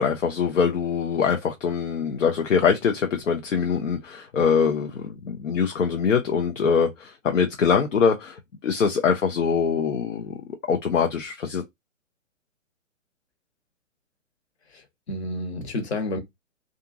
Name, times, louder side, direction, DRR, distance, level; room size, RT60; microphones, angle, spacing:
voice 1, 0.0-10.3 10.7-11.6, left 6 dB, 65° left, 0.7 m, -23 dB
voice 2, 14.7-16.2, left 2 dB, 50° left, 1.2 m, -30 dB
2.6 x 2.5 x 2.6 m
figure-of-eight pair, 130°, 40 cm